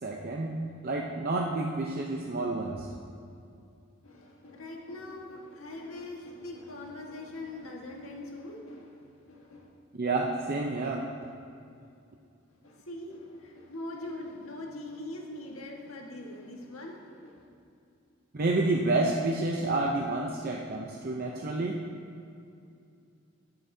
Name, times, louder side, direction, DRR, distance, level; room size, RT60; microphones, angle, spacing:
voice 1, 0.0-2.9 9.9-11.0 18.3-21.8, right 2 dB, 45° right, -1 dB, 0.7 m, -29 dB
voice 2, 4.0-9.7 12.6-17.5, left 2 dB, 85° left, -1 dB, 1.6 m, -42 dB
18.0 x 7.9 x 2.8 m, 2.5 s
head